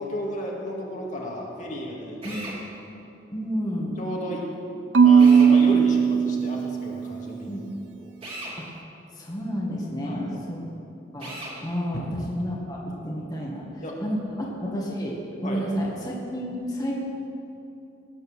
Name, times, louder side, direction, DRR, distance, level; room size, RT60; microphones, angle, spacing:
voice 1, 0.0-2.4 4.0-4.4 5.0-7.6 8.0-8.1 10.0-10.4 11.9-12.2 13.8-13.9 15.4-15.6, left 1 dB, 45° left, -2 dB, 2.2 m, -33 dB
Drill, 2.2-2.6 5.2-5.5 8.2-8.6 11.2-11.6, right 1 dB, 30° right, 3.0 m, -37 dB
voice 2, 3.3-3.9 7.5-7.6 8.6-8.7 9.2-10.6 11.1-12.8 13.0-13.6 14.0-15.1 15.4-16.9, equal, 20° left, -4 dB, 1.9 m, -30 dB
Marimba xylophone / Wood, 4.9-7.1, right 6 dB, 85° right, 0.7 m, -17 dB
18.5 x 8.5 x 6.5 m, 2.8 s
head